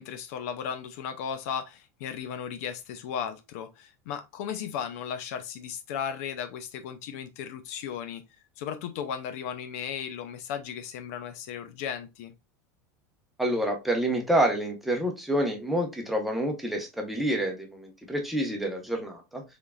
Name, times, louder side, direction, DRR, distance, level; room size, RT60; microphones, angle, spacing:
voice 1, 0.0-8.2 8.6-12.3, left 8 dB, 65° left, 0.6 m, -35 dB
voice 2, 13.4-19.4, right 1 dB, ahead, 1.0 m, -28 dB
3.7 x 3.6 x 2.2 m
supercardioid pair, 135°, 9 cm